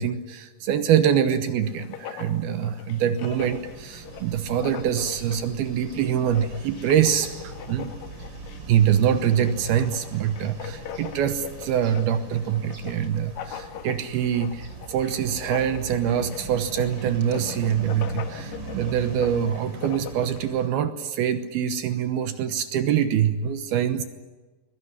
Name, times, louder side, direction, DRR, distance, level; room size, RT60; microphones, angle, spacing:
voice 1, 0.0-7.9 8.7-24.0, right 9 dB, 70° right, 10 dB, 2.7 m, -24 dB
Writing, 1.6-20.4, left 9 dB, 70° left, 1.7 m, -41 dB
sound 1, 3.2-20.7, right 2 dB, 30° right, 3.2 m, -41 dB
22.5 x 22.0 x 9.6 m, 1.3 s
omnidirectional pair, 5.0 m